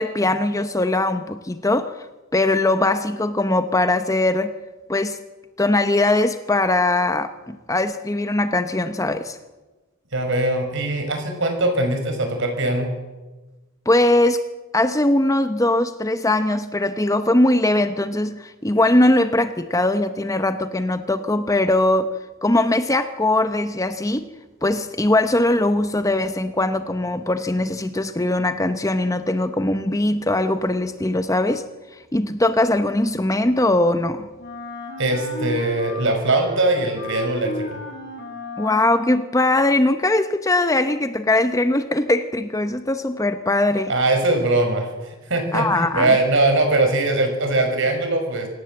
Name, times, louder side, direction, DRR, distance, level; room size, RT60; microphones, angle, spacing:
voice 1, 0.0-2.0 2.3-4.5 4.9-5.2 5.6-9.4 13.9-14.4 14.7-22.1 22.4-24.3 24.6-31.6 32.1-34.3 38.6-43.9 45.5-46.2, left 2 dB, 15° left, 9 dB, 0.8 m, -20 dB
voice 2, 10.1-12.9 35.0-37.8 43.9-48.5, right 2 dB, 60° right, 5 dB, 5.9 m, -21 dB
Wind instrument woodwind instrument, 34.4-39.4, left 1 dB, 50° left, 6.9 m, -33 dB
27.0 x 17.5 x 7.8 m, 1.2 s
head